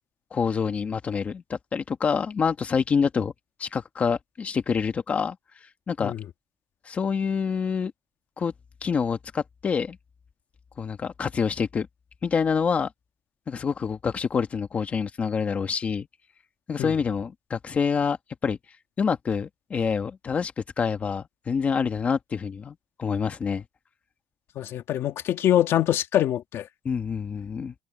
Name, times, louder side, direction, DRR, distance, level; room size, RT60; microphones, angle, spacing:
voice 1, 0.3-3.3 3.6-5.4 5.9-6.1 6.9-7.9 8.4-8.5 8.8-10.0 10.8-11.9 12.2-12.9 13.5-16.1 16.7-18.2 18.4-18.6 19.0-23.6 26.9-27.7, left 6 dB, 30° left, 1.6 m, -26 dB
voice 2, 24.6-26.7, left 11 dB, 60° left, 2.0 m, -24 dB
cardioid pair, 180°, 5 cm